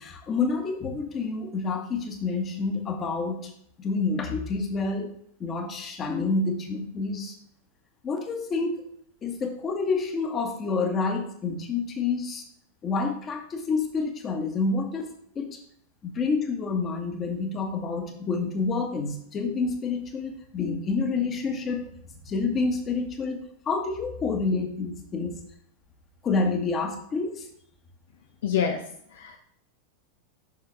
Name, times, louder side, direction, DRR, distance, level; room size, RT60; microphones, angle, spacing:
voice 1, 0.0-3.5 3.8-5.1 5.4-7.3 8.0-8.8 9.2-12.4 12.8-15.1 15.3-15.6 16.0-21.8 22.2-25.4 26.2-27.5, left 4 dB, 25° left, 4 dB, 1.4 m, -28 dB
voice 2, 28.4-28.8 29.1-29.4, left 7 dB, 60° left, 4 dB, 0.7 m, -26 dB
7.2 x 6.1 x 3.4 m, 0.68 s
figure-of-eight pair, 90°, 0 cm